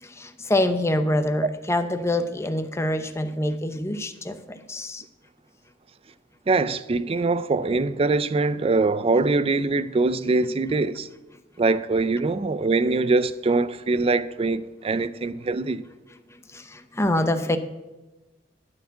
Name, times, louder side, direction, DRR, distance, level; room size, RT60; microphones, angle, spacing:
voice 1, 0.0-5.0 16.5-17.6, left 1 dB, 15° left, 0.7 m, -25 dB
voice 2, 6.5-11.1 11.6-15.8, right 3 dB, 30° right, 0.4 m, -23 dB
13.0 x 4.7 x 8.3 m
head